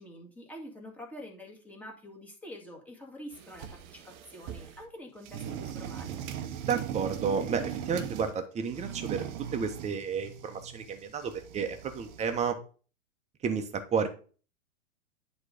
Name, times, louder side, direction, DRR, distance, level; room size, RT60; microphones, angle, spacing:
voice 1, 0.0-6.2, equal, 5° left, -1 dB, 2.0 m, -46 dB
sound 1, 3.3-4.8 5.2-8.4 8.7-12.5, right 10 dB, 35° right, 0.9 m, -40 dB
voice 2, 6.6-9.2 9.5-12.6 13.4-14.1, right 6 dB, 15° right, 6 dB, 1.2 m, -31 dB
9.7 x 4.1 x 5.1 m, 0.37 s
hypercardioid pair, 115°, 41 cm